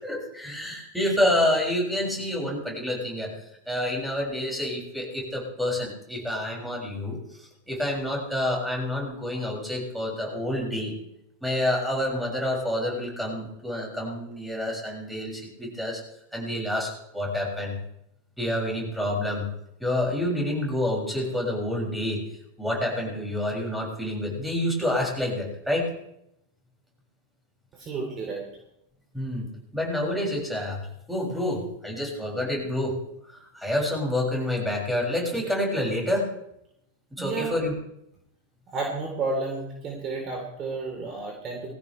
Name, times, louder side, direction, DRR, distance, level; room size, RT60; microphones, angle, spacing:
voice 1, 0.0-3.3 3.7-10.9 11.4-16.0 16.3-17.8 18.4-19.5 19.8-22.3 22.6-25.9 29.1-29.5 29.7-33.0 33.3-36.3 37.2-37.7, left 1 dB, ahead, -2 dB, 6.8 m, -28 dB
voice 2, 27.7-28.4 37.2-37.5 38.7-41.7, right 3 dB, 30° right, 0 dB, 3.8 m, -31 dB
21.0 x 16.0 x 3.4 m, 0.78 s
figure-of-eight pair, 90°, 0 cm